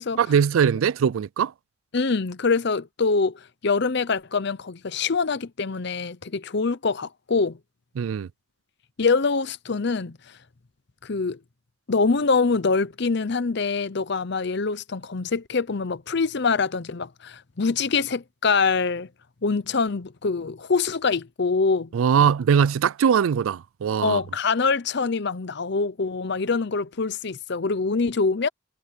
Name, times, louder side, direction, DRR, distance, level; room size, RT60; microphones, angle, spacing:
voice 1, 0.2-1.5 8.0-8.3 21.9-24.2, right 7 dB, 85° right, 0.4 m, -21 dB
voice 2, 1.9-7.6 9.0-10.2 11.0-11.4 11.9-19.1 19.4-21.9 22.2-22.3 24.0-28.5, left 4 dB, 55° left, 0.7 m, -24 dB
head